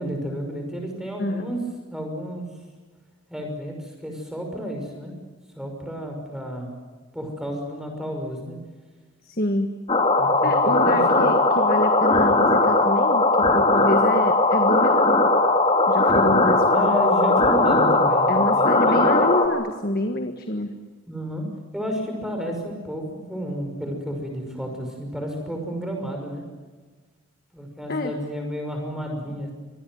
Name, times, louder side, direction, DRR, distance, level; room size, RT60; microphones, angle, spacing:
voice 1, 0.0-1.6 1.9-2.5 3.3-5.1 5.6-6.7 7.1-8.6 10.2-11.2 16.7-19.1 21.1-21.4 21.7-26.4 27.5-29.5, equal, 5° right, 2 dB, 6.0 m, -31 dB
voice 2, 1.2-1.6 9.2-9.7 10.4-15.2 15.9-17.0 18.3-20.7 27.9-28.1, left 1 dB, 45° left, 6 dB, 1.6 m, -27 dB
sound 1, 9.9-19.5, left 2 dB, 25° left, 3.0 m, -19 dB
26.0 x 20.0 x 9.4 m, 1.4 s
head